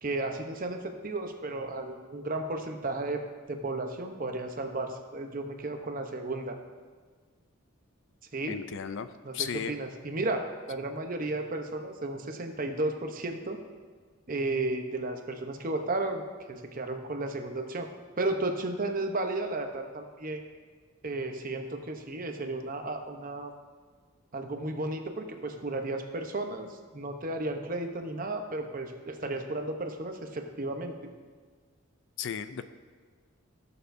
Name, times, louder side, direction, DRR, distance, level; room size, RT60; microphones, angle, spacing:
voice 1, 0.0-3.2 3.5-6.6 8.3-8.6 9.2-13.6 14.3-16.2 16.5-17.9 18.2-20.4 21.0-23.5 24.3-30.9, right 2 dB, 40° right, 5 dB, 0.8 m, -33 dB
voice 2, 8.5-9.1 9.3-9.7 32.2-32.6, left 8 dB, 60° left, 12 dB, 0.4 m, -34 dB
17.5 x 6.9 x 2.6 m, 1.5 s
head